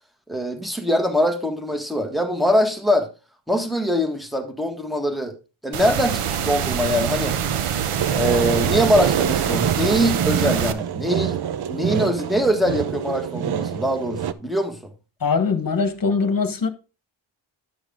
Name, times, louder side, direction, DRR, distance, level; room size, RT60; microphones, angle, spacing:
voice 1, 0.3-3.1 3.5-5.3 5.6-7.4 8.1-11.4 11.7-14.9, equal, ahead, 1.6 m, -23 dB
sound 1, 5.7-10.7, right 8 dB, 90° right, 0.8 m, -25 dB
sound 2, 8.0-14.3, right 9 dB, 50° right, 0.6 m, -26 dB
voice 2, 15.2-16.7, left 5 dB, 40° left, 1.3 m, -21 dB
10.5 x 6.4 x 3.7 m
wide cardioid pair, 105°, 50 cm